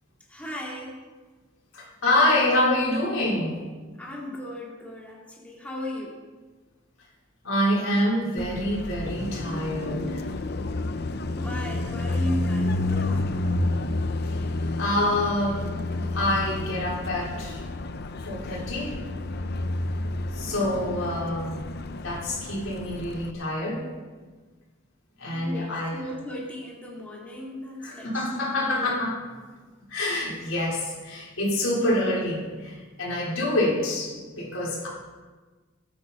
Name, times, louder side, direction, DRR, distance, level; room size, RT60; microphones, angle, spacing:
voice 1, 0.3-1.0 4.0-6.2 11.2-13.5 25.3-29.0, left 1 dB, 5° left, -4 dB, 2.1 m, -37 dB
voice 2, 1.7-3.5 7.4-10.2 14.2-14.4 14.8-15.8 16.1-17.6 18.2-19.0 20.3-21.6 22.0-23.9 25.2-26.0 27.8-29.1 29.9-34.9, left 1 dB, 75° left, -4 dB, 4.4 m, -26 dB
Car passing by, 8.4-23.3, left 2 dB, 50° left, 0.7 m, -30 dB
19.5 x 8.9 x 4.3 m, 1.4 s
head